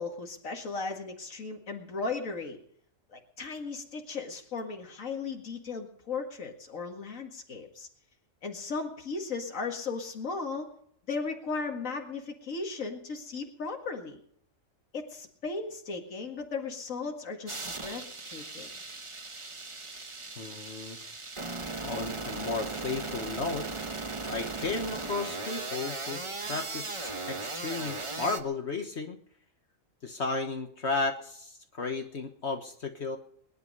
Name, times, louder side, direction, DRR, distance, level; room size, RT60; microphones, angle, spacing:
voice 1, 0.0-2.6 3.1-7.9 8.4-10.7 11.1-14.2 14.9-18.0 18.3-18.7, left 4 dB, 85° left, 2 dB, 2.3 m, -36 dB
sound 1, 17.5-28.4, right 3 dB, 25° right, 1.0 m, -37 dB
voice 2, 20.4-21.1 21.8-23.8 24.2-26.2 26.5-29.2 30.0-33.2, left 3 dB, 60° left, 5 dB, 1.6 m, -34 dB
21.5 x 11.0 x 5.4 m, 0.66 s
omnidirectional pair, 1.3 m